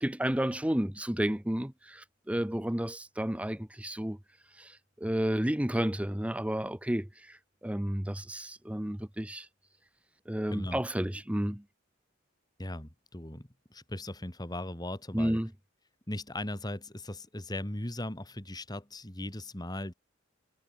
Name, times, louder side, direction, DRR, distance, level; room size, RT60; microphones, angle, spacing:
voice 1, 0.0-4.2 4.6-9.5 10.3-11.6 15.1-15.5, equal, 5° right, 0.7 m, -31 dB
voice 2, 12.6-15.4 16.1-19.9, left 1 dB, 20° left, 2.7 m, -38 dB
head